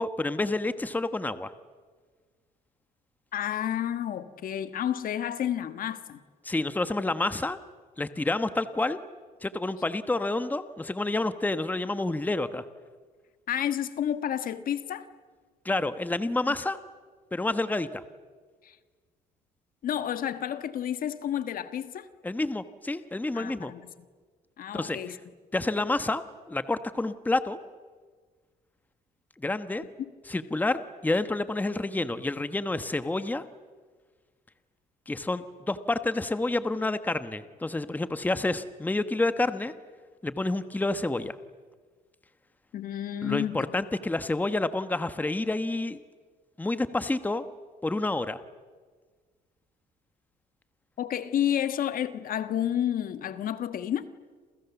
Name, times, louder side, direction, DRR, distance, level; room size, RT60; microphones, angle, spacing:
voice 1, 0.0-1.5 6.4-7.6 8.0-9.0 9.4-12.6 15.6-16.8 17.3-18.0 22.2-23.7 24.7-25.0 25.5-26.2 26.5-27.6 29.4-29.8 30.3-33.4 35.1-39.7 40.2-41.4 43.2-46.0 46.6-47.4 47.8-48.4, left 2 dB, 10° left, 11 dB, 1.2 m, -29 dB
voice 2, 3.3-6.2 13.5-15.1 18.6-18.8 19.8-22.1 23.3-23.9 24.6-25.2 30.0-30.1 42.7-43.7 51.0-54.1, left 10 dB, 55° left, 11 dB, 1.5 m, -30 dB
28.5 x 28.5 x 7.1 m, 1.5 s
cardioid pair, 110°, 17 cm